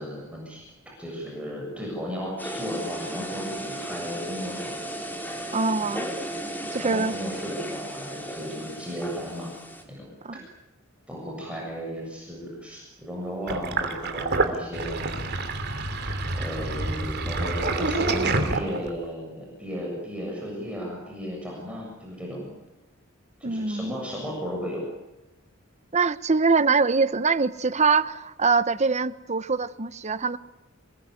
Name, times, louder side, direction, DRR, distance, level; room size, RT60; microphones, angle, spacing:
voice 1, 0.0-4.7 6.8-9.5 9.9-10.1 11.1-15.2 16.3-22.5 23.4-24.9, equal, 5° right, 7.3 m, -35 dB
sound 1, 2.4-9.8, right 1 dB, 10° left, 4.0 m, -35 dB
voice 2, 5.5-6.1 6.7-7.1 10.2-10.3 23.4-23.9 25.9-30.4, right 4 dB, 35° right, 1.0 m, -23 dB
Sink (filling or washing), 13.5-19.0, right 2 dB, 55° right, 3.1 m, -27 dB
27.5 x 21.5 x 9.7 m
head